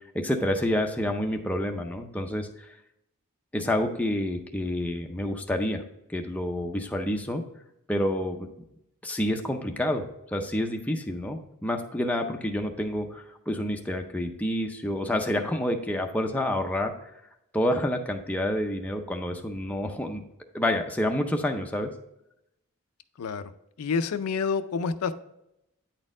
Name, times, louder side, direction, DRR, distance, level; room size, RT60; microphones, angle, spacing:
voice 1, 0.1-2.5 3.5-5.8 6.1-7.4 7.9-8.5 9.0-16.9 17.5-20.2 20.5-21.9, left 1 dB, 5° left, 3 dB, 0.5 m, -28 dB
voice 2, 23.2-23.5 23.8-25.1, left 5 dB, 80° left, 11 dB, 0.4 m, -28 dB
8.9 x 4.2 x 3.7 m, 0.84 s
head